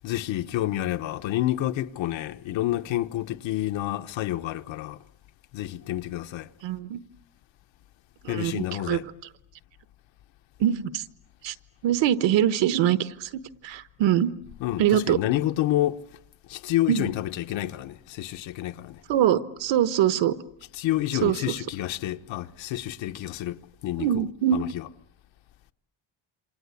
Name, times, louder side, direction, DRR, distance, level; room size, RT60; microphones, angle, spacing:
voice 1, 0.0-5.0 5.5-6.5 8.3-9.0 14.6-16.0 16.5-19.0 20.7-23.6 23.8-24.2 24.5-24.8, left 14 dB, 90° left, 1.2 m, -29 dB
voice 2, 6.6-7.0 8.2-9.0 10.6-11.0 11.4-11.5 11.8-13.3 13.6-14.3 14.8-15.2 16.9-17.1 19.1-20.3 21.2-21.5 24.0-24.6, right 10 dB, 75° right, 1.3 m, -23 dB
27.5 x 25.0 x 8.4 m
cardioid pair, 180°, 44 cm